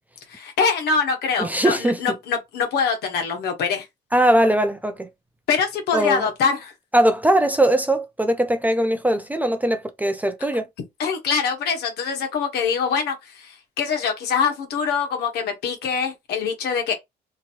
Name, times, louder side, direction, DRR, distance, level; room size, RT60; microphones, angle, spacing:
voice 1, 0.3-3.9 5.5-6.7 11.0-16.9, left 6 dB, 75° left, 1.3 m, -24 dB
voice 2, 1.4-2.0 4.1-5.1 5.9-6.3 6.9-10.7, right 1 dB, 10° right, 0.4 m, -20 dB
2.9 x 2.6 x 2.8 m
cardioid pair, 110°, 17 cm